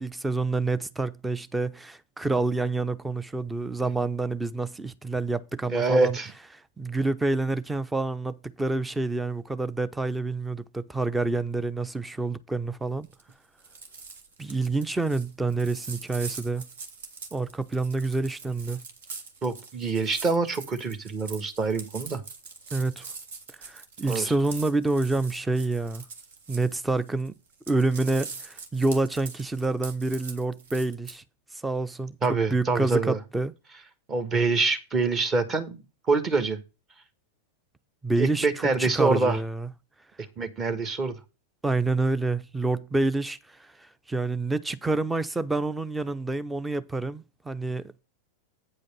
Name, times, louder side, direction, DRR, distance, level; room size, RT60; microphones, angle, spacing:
voice 1, 0.0-6.2 6.8-13.1 14.4-16.7 17.3-18.8 22.7-23.1 23.6-26.0 26.5-27.4 27.7-31.2 31.5-33.5 38.0-39.7 41.6-48.0, right 3 dB, 10° right, 0.7 m, -28 dB
voice 2, 5.7-6.3 19.4-22.2 24.1-24.3 32.2-33.2 34.1-36.6 38.2-39.4 40.4-41.1, right 3 dB, 25° right, 1.5 m, -25 dB
sound 1, 13.0-13.3 13.6-27.3 27.5-31.2, right 5 dB, 60° right, 1.6 m, -43 dB
9.1 x 5.2 x 5.4 m
figure-of-eight pair, 90°, 0 cm